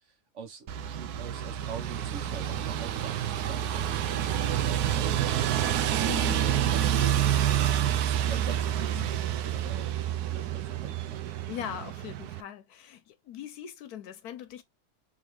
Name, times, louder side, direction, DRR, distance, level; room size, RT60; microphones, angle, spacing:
voice 1, 0.3-5.1 6.0-6.4 6.6-11.3, right 6 dB, 55° right, 1.2 m, -44 dB
sound 1, 0.7-12.4, right 10 dB, 85° right, 1.1 m, -28 dB
voice 2, 6.1-6.5 7.9-8.1 8.9-9.2 11.5-14.6, left 10 dB, 85° left, 1.2 m, -41 dB
3.7 x 3.1 x 3.1 m
omnidirectional pair, 1.6 m